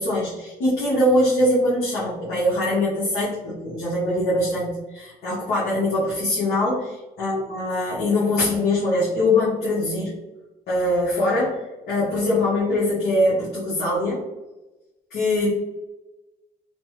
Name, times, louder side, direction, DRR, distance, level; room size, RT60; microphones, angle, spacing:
voice 1, 0.0-10.1 10.7-14.2 15.1-15.5, left 1 dB, 65° left, -7 dB, 1.1 m, -22 dB
3.2 x 2.1 x 3.0 m, 1.1 s
cardioid pair, 110°, 17 cm